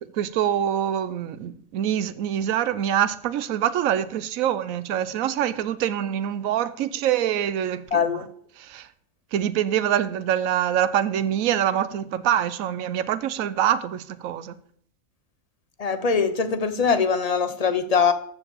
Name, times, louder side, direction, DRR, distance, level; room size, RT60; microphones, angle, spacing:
voice 1, 0.2-8.2 8.7-8.8 9.3-14.5, right 10 dB, 80° right, 1.1 m, -25 dB
voice 2, 7.9-8.2 15.8-18.1, left 5 dB, 30° left, 0.8 m, -22 dB
14.0 x 4.7 x 7.0 m
omnidirectional pair, 1.4 m